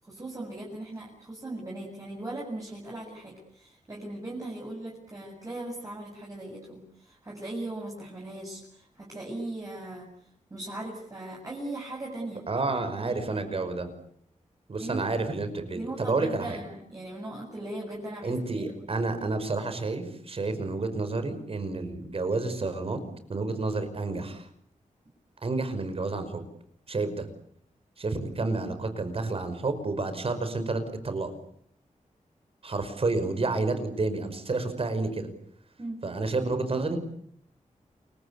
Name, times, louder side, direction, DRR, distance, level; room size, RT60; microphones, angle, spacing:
voice 1, 0.0-10.1 10.5-12.4 13.0-13.7 14.8-15.0 15.7-18.7 35.8-36.0, right 2 dB, 25° right, -2 dB, 7.8 m, -39 dB
voice 2, 12.5-13.9 14.7-16.6 18.2-23.0 23.3-24.5 25.4-26.4 26.9-27.3 28.0-31.4 32.6-35.3 36.0-37.0, right 3 dB, 45° right, 10 dB, 5.4 m, -30 dB
29.0 x 23.5 x 8.3 m, 0.68 s
wide cardioid pair, 145°, 13 cm